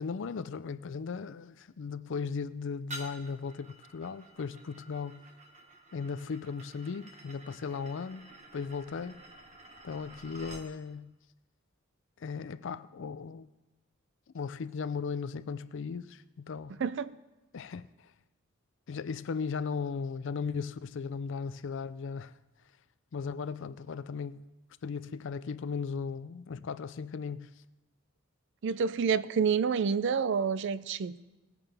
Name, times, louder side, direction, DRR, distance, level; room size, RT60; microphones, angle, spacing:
voice 1, 0.0-5.2 5.9-9.2 9.8-11.1 12.2-13.5 14.3-16.8 17.5-18.1 18.9-22.4 23.1-24.5 24.8-27.5, left 5 dB, 65° left, 0.4 m, -37 dB
sound 1, 2.9-10.7, right 2 dB, 35° right, 1.2 m, -50 dB
voice 2, 16.8-17.1 28.6-31.2, right 6 dB, 60° right, 0.4 m, -28 dB
19.0 x 9.2 x 3.4 m
head